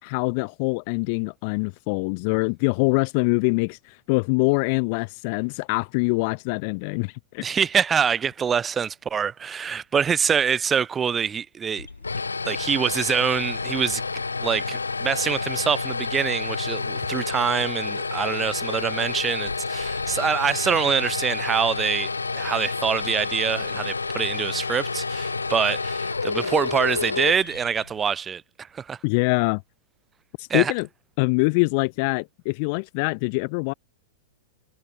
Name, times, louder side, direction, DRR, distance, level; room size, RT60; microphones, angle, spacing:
voice 1, 0.0-7.4 29.0-29.6 30.4-30.9 31.2-33.7, left 32 dB, 45° left, 2.3 m, -24 dB
voice 2, 7.4-11.9 12.4-14.0 14.4-29.0 30.5-30.7, right 7 dB, 20° right, 1.7 m, -25 dB
sound 1, 11.8-28.0, left 4 dB, 80° left, 6.1 m, -29 dB
figure-of-eight pair, 100°, 0 cm